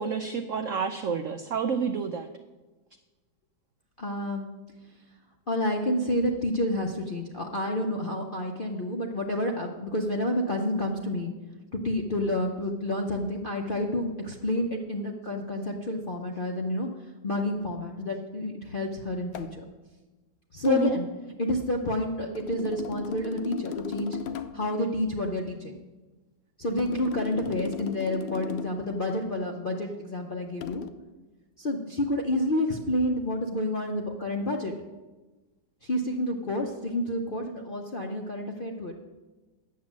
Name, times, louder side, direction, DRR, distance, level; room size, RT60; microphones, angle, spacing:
voice 1, 0.0-2.3 20.7-21.0, right 6 dB, 80° right, 7 dB, 0.7 m, -29 dB
voice 2, 4.0-4.5 5.5-11.3 11.7-16.9 17.2-19.6 20.5-21.1 21.4-24.2 24.5-25.8 26.6-30.8 31.6-34.7 35.8-38.9, left 1 dB, 55° left, 1 dB, 0.5 m, -29 dB
sound 1, 19.3-19.6 20.7-20.9 22.4-24.7 26.8-28.9 30.6-30.9, left 10 dB, 85° left, 1.4 m, -37 dB
9.4 x 7.5 x 7.3 m, 1.2 s
omnidirectional pair, 2.0 m